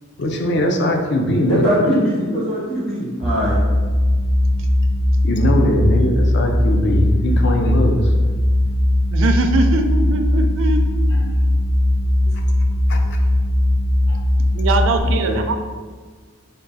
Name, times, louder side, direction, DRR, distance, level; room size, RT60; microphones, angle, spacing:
voice 1, 0.2-1.7 5.2-8.1 11.1-11.2 12.9-13.2 14.1-14.2, left 1 dB, 55° left, 2 dB, 0.5 m, -20 dB
voice 2, 1.5-3.6 15.2-15.3, equal, 25° left, -8 dB, 1.2 m, -21 dB
sound 1, 3.2-15.0, left 1 dB, 5° right, 0.4 m, -18 dB
voice 3, 9.1-10.8 11.1-11.3 14.5-15.5, right 3 dB, 65° right, 6 dB, 0.4 m, -21 dB
3.7 x 2.2 x 4.0 m, 1.5 s
head